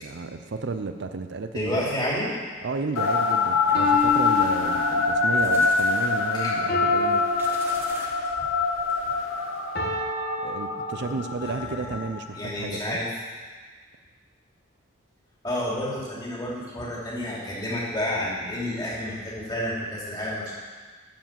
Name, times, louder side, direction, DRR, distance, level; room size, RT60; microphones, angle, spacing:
voice 1, 0.0-2.1 2.6-7.2 10.4-13.0, right 4 dB, 55° right, 8 dB, 0.5 m, -32 dB
voice 2, 1.5-2.3 6.3-6.5 11.0-11.1 11.4-12.0 12.3-13.1 15.4-20.5, left 1 dB, 20° left, -6 dB, 2.7 m, -30 dB
sound 1, 3.0-12.4, left 4 dB, 75° left, 1.2 m, -25 dB
sound 2, 3.7-9.4, right 1 dB, 10° right, 1.2 m, -45 dB
sound 3, 3.8-5.4 6.7-8.3 9.8-11.4, left 1 dB, 45° left, 1.5 m, -31 dB
12.5 x 4.9 x 7.5 m, 1.5 s
head